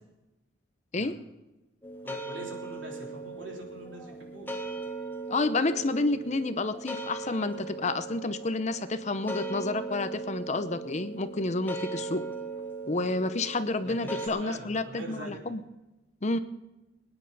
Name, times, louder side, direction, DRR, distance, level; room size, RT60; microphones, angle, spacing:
sound 1, 1.8-14.3, right 3 dB, 10° left, 1.2 m, -39 dB
voice 1, 2.0-4.5 13.8-15.4, right 1 dB, 80° right, 0 dB, 3.5 m, -43 dB
voice 2, 5.3-12.2 12.9-15.6 16.2-16.4, left 2 dB, 40° left, 11 dB, 0.7 m, -30 dB
23.5 x 9.9 x 4.1 m, 1.0 s
head